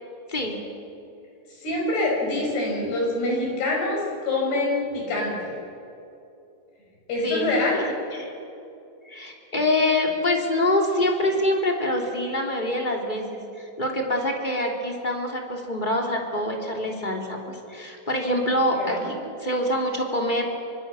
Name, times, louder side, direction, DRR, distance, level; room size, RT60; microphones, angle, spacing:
voice 1, 1.6-5.6 7.1-7.8 18.7-19.1, left 2 dB, 55° left, -1 dB, 8.0 m, -25 dB
voice 2, 7.2-7.8 8.1-8.3 9.1-13.2 13.6-17.4 17.7-20.4, left 1 dB, 10° left, 1 dB, 2.5 m, -25 dB
26.0 x 24.5 x 7.1 m, 2.7 s
omnidirectional pair, 5.4 m